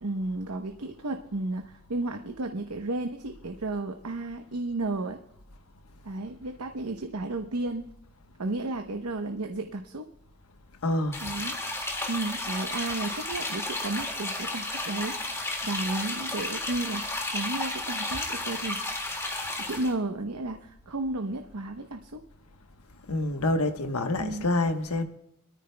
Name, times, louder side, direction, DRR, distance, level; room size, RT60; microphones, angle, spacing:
voice 1, 0.0-5.2 6.0-7.8 8.4-10.1 11.2-11.6 12.1-15.1 15.6-18.8 19.6-22.2 24.2-24.5, right 2 dB, 85° right, 0.9 m, -33 dB
voice 2, 10.8-11.2 23.1-25.0, left 2 dB, 80° left, 1.1 m, -27 dB
sound 1, 11.1-19.9, left 2 dB, 15° left, 2.0 m, -33 dB
23.5 x 13.5 x 2.2 m
head